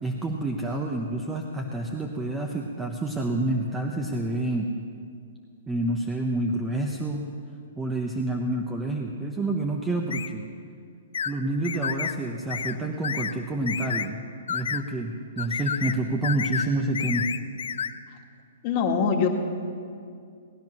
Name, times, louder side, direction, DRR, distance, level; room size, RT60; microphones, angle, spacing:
voice 1, 0.0-4.7 5.7-7.3 7.8-10.5 11.2-14.2 14.5-17.2, right 2 dB, 10° right, 1 dB, 0.9 m, -28 dB
sound 1, 10.1-10.3 11.1-11.3 11.6-12.2 12.5-12.8 13.0-13.3 13.7-14.1 14.5-14.8 15.4-16.0 16.2-16.7 16.9-17.9, left 7 dB, 80° left, 0.6 m, -30 dB
voice 2, 18.6-19.3, left 6 dB, 35° left, 1 dB, 1.9 m, -23 dB
19.0 x 10.5 x 6.0 m, 2.3 s
hypercardioid pair, 145°, 0 cm